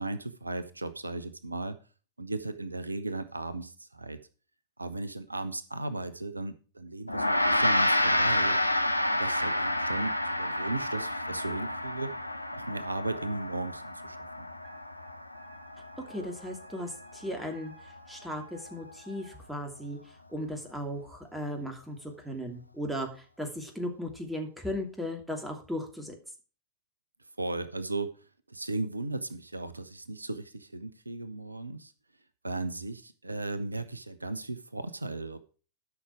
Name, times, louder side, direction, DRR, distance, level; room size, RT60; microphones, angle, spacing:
voice 1, 0.0-1.8 2.2-4.2 4.8-8.6 9.1-12.1 12.5-14.5 27.4-28.1 28.5-31.9 32.4-35.4, right 2 dB, 80° right, 13 dB, 0.7 m, -36 dB
Gong, 7.1-16.6, left 1 dB, 85° left, 0.6 m, -29 dB
Wind instrument woodwind instrument, 14.6-19.4, equal, 25° right, 5.5 m, -54 dB
voice 2, 16.1-17.7 18.1-20.0 20.3-26.1, equal, 5° right, 3 dB, 2.7 m, -36 dB
12.5 x 6.0 x 4.7 m, 0.37 s
figure-of-eight pair, 90°, 0 cm